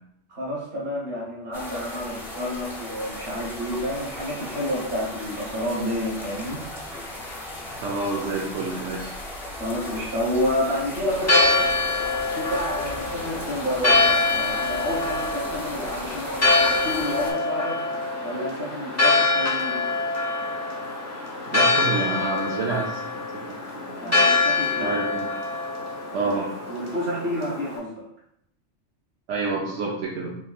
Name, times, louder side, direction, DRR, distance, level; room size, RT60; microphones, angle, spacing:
voice 1, 0.3-6.6 9.6-11.6 12.3-17.8 18.2-19.8 24.0-25.0 26.2-26.3 26.7-28.1, left 1 dB, 55° right, -5 dB, 1.4 m, -29 dB
sound 1, 1.5-17.3, left 1 dB, 50° left, 1.1 m, -37 dB
voice 2, 7.8-9.1 21.5-23.0 23.3-24.2 24.8-25.3 26.1-26.6 29.3-30.4, right 3 dB, 80° right, -3 dB, 0.9 m, -28 dB
Church bell, 11.1-27.8, left 3 dB, 20° left, 0.5 m, -24 dB
3.5 x 3.0 x 2.4 m, 0.74 s
omnidirectional pair, 1.2 m